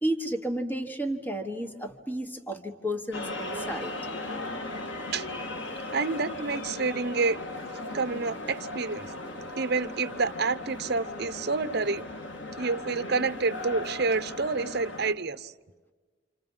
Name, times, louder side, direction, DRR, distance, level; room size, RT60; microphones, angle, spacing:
voice 1, 0.0-3.9, right 1 dB, 10° left, 5 dB, 1.4 m, -32 dB
sound 1, 3.1-15.1, left 2 dB, 75° left, 2.1 m, -37 dB
voice 2, 5.9-7.4 7.9-9.1 9.6-12.1 12.6-15.5, right 4 dB, 55° right, 12 dB, 0.9 m, -28 dB
28.0 x 28.0 x 5.5 m, 1.3 s
head